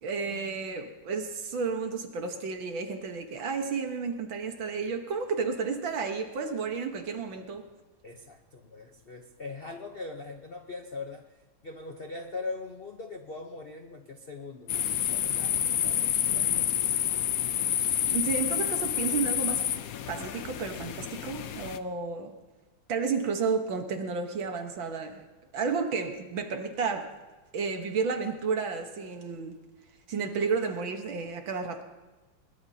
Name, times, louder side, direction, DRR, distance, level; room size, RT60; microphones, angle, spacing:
voice 1, 0.0-7.7 17.8-19.6 20.1-22.3 22.9-25.3 25.5-27.1 27.5-29.6 30.1-31.8, right 5 dB, 65° right, 5 dB, 2.0 m, -32 dB
voice 2, 8.0-11.3 11.6-17.1, left 3 dB, 50° left, 3 dB, 0.7 m, -41 dB
sound 1, 14.7-21.8, left 10 dB, 90° left, 0.7 m, -29 dB
22.0 x 21.0 x 2.8 m, 1.2 s
omnidirectional pair, 2.3 m